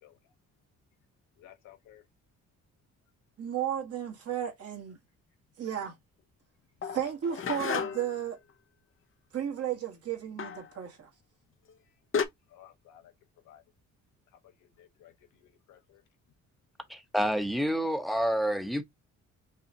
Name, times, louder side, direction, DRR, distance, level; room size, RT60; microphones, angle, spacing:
voice 1, 1.4-2.0 12.5-13.1 13.4-13.6 14.4-16.0, left 11 dB, 90° left, 1.1 m, -56 dB
voice 2, 3.4-5.0 5.6-5.9 6.9-8.4 9.3-11.1, right 9 dB, 55° right, 1.6 m, -33 dB
sound 1, 6.8-8.2 10.4-10.7 11.7-11.8 12.1-12.3, left 6 dB, 45° left, 0.7 m, -32 dB
voice 3, 16.9-18.8, equal, ahead, 0.9 m, -28 dB
5.5 x 2.4 x 2.7 m
cardioid pair, 90°, 30 cm